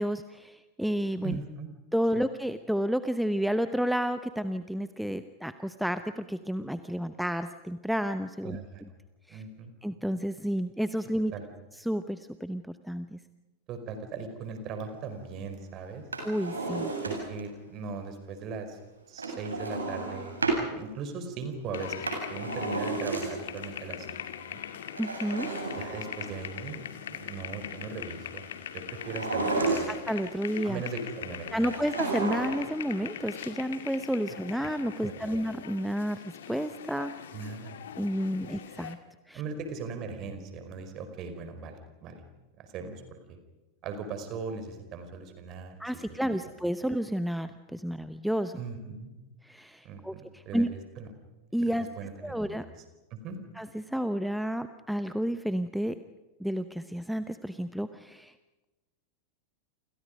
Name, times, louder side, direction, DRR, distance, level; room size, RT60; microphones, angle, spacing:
voice 1, 0.0-1.4 1.9-8.6 9.3-9.4 9.8-11.3 11.8-13.2 16.2-16.9 25.0-25.5 29.9-30.8 31.5-37.1 38.0-39.0 39.3-39.4 45.8-48.6 49.4-50.7 51.5-51.9 52.2-52.7 53.6-56.0 56.4-58.3, equal, ahead, 11 dB, 0.9 m, -31 dB
voice 2, 1.2-1.7 2.1-2.3 8.4-8.8 9.3-9.7 11.3-11.4 13.7-16.0 17.0-18.8 19.1-20.3 20.7-24.6 25.7-29.9 30.6-31.8 34.3-34.7 35.0-35.4 37.3-37.8 38.4-38.5 39.3-42.2 42.6-43.4 43.8-45.8 46.1-46.2 48.6-49.1 49.8-50.7 51.0-51.1 51.6-52.6 53.1-53.4, right 5 dB, 35° right, 8 dB, 4.9 m, -39 dB
Drawer open or close, 16.0-17.5 19.2-20.7 21.8-23.6 24.9-26.5 28.9-30.2 31.6-32.7 33.0-33.1, right 3 dB, 75° right, 7.8 m, -32 dB
sound 1, 21.7-39.0, left 9 dB, 60° left, 2.1 m, -41 dB
29.5 x 27.5 x 5.3 m, 1.1 s
figure-of-eight pair, 90°, 0 cm